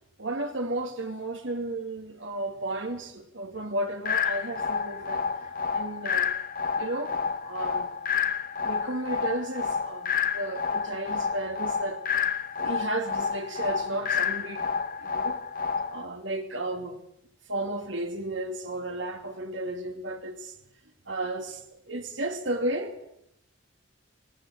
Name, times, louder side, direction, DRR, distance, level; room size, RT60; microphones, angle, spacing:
voice 1, 0.2-6.3 6.8-7.2 7.4-7.9 8.6-12.0 12.6-14.7 15.0-15.4 15.9-17.0 17.5-20.5 21.1-22.9, right 1 dB, 65° right, 2.5 m, -33 dB
sound 1, 4.0-16.0, left 6 dB, 45° left, 0.8 m, -29 dB
19.5 x 19.0 x 8.9 m
head